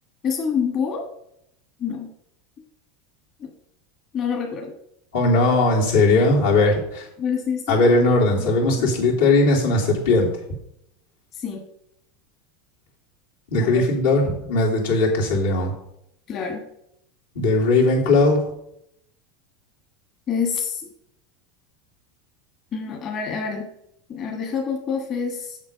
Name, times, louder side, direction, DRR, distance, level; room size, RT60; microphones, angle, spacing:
voice 1, 0.2-1.1 1.8-2.1 3.4-3.5 4.1-4.7 7.2-7.8 8.4-8.5 8.7-8.9 11.3-11.7 13.6-13.8 16.3-16.7 20.3-20.9 22.7-23.7 24.1-25.6, left 6 dB, 40° left, 2 dB, 1.4 m, -27 dB
voice 2, 5.1-7.1 7.7-10.3 13.5-15.7 17.3-18.5, left 2 dB, 85° left, -3 dB, 2.9 m, -18 dB
7.4 x 6.0 x 5.1 m, 0.77 s
supercardioid pair, 105°, 0 cm